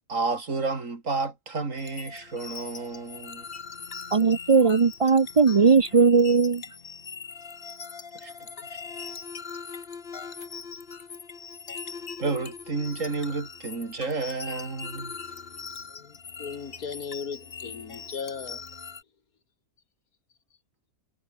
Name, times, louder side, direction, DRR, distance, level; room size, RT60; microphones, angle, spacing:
voice 1, 0.1-3.5 4.6-4.7 8.1-8.8 12.2-15.2, right 3 dB, 60° right, 3.3 m, -31 dB
sound 1, 1.8-19.0, left 5 dB, 45° left, 1.5 m, -41 dB
voice 2, 4.1-6.6, right 5 dB, 45° right, 0.4 m, -19 dB
voice 3, 15.9-18.6, left 6 dB, 90° left, 2.3 m, -37 dB
omnidirectional pair, 1.5 m